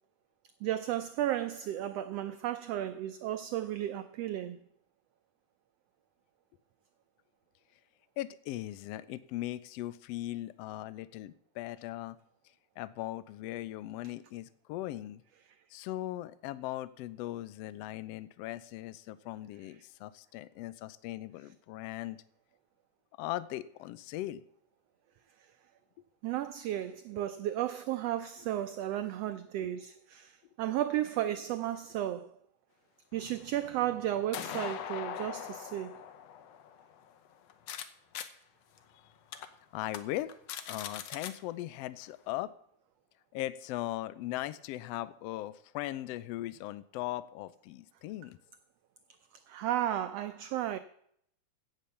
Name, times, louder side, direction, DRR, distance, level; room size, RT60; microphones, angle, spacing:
voice 1, 0.6-4.6 26.2-32.4 33.1-36.0 49.5-50.8, right 12 dB, 85° right, 1.4 m, -34 dB
voice 2, 8.2-12.2 12.8-15.2 15.7-22.2 23.2-24.4 39.7-40.3 40.7-42.5 43.3-48.4, left 15 dB, 85° left, 1.4 m, -39 dB
sound 1, 33.1-37.8 38.1-38.3 38.8-38.9 39.3-39.5 39.9-40.0 40.3-41.3, left 9 dB, 70° left, 1.8 m, -42 dB
16.0 x 6.8 x 7.0 m
omnidirectional pair, 3.5 m